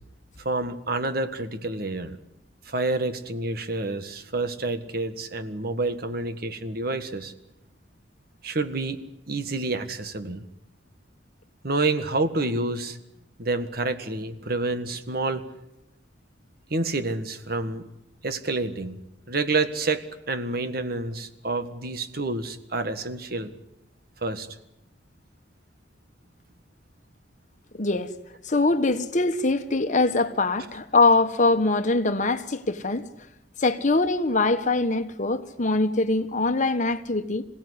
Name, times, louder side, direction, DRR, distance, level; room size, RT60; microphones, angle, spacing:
voice 1, 0.4-2.2 2.6-7.3 8.4-10.4 11.6-13.0 13.4-15.4 16.7-17.8 18.2-19.0 19.3-23.5 24.2-24.5, right 2 dB, 60° right, 1.7 m, -28 dB
voice 2, 27.7-28.1 28.4-33.1 33.6-37.5, left 3 dB, 45° left, 1.4 m, -23 dB
26.5 x 17.0 x 9.9 m
head